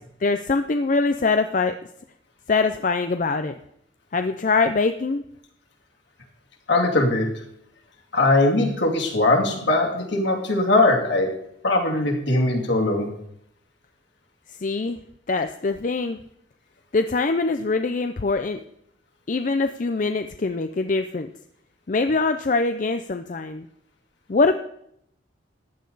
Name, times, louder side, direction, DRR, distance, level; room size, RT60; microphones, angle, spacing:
voice 1, 0.2-1.7 2.5-3.5 4.1-5.2 14.6-15.0 15.3-16.2 16.9-18.6 19.3-21.3 21.9-23.7 24.3-24.6, left 3 dB, 40° left, 8 dB, 0.5 m, -23 dB
voice 2, 6.7-7.3 8.1-11.3 11.6-13.1, left 2 dB, 65° left, 0 dB, 2.7 m, -20 dB
15.0 x 10.5 x 4.0 m, 0.73 s
head